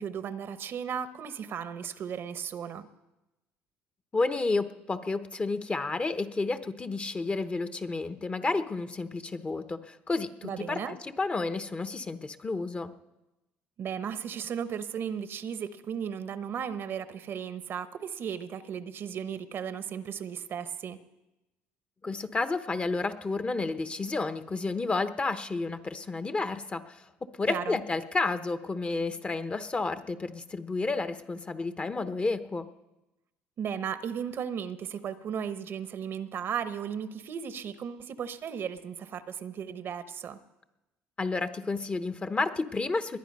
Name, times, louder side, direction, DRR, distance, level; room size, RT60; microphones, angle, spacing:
voice 1, 0.0-2.9 10.4-11.0 13.8-21.0 27.5-27.8 33.6-40.4, right 8 dB, 55° right, 13 dB, 0.9 m, -35 dB
voice 2, 4.1-12.9 22.0-32.7 41.2-43.2, left 3 dB, 25° left, 11 dB, 0.9 m, -31 dB
21.0 x 10.0 x 5.4 m, 0.99 s
supercardioid pair, 80°, 5 cm